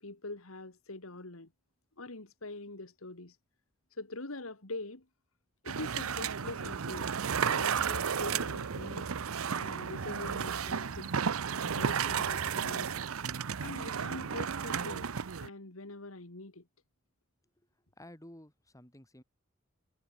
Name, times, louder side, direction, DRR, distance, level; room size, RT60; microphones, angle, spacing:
voice 1, 0.0-1.5 2.0-3.4 3.9-5.1 5.6-7.1 7.5-9.1 9.5-11.1 11.6-12.9 13.6-15.1 15.4-16.7, left 2 dB, 80° left, 2.4 m, -43 dB
sound 1, 5.7-15.5, right 7 dB, 85° right, 0.7 m, -33 dB
voice 2, 18.0-19.2, left 1 dB, 15° left, 7.8 m, -52 dB
head